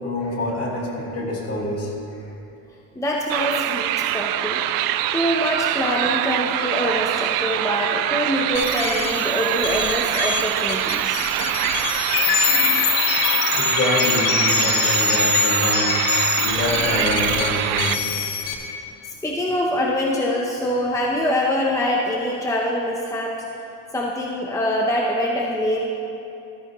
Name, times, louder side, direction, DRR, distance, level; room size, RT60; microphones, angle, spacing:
voice 1, 0.0-1.9 3.4-3.5 13.6-16.0 16.4-18.0, left 1 dB, 45° left, -2 dB, 2.2 m, -26 dB
voice 2, 3.0-4.6 5.1-11.4 12.0-12.4 19.0-23.4 23.9-25.9, equal, 10° left, -1 dB, 0.7 m, -24 dB
sound 1, 3.3-18.0, right 13 dB, 75° right, 0.5 m, -24 dB
sound 2, 8.5-18.5, left 6 dB, 80° left, 1.3 m, -23 dB
13.5 x 13.0 x 3.0 m, 2.8 s
cardioid pair, 140°, 35 cm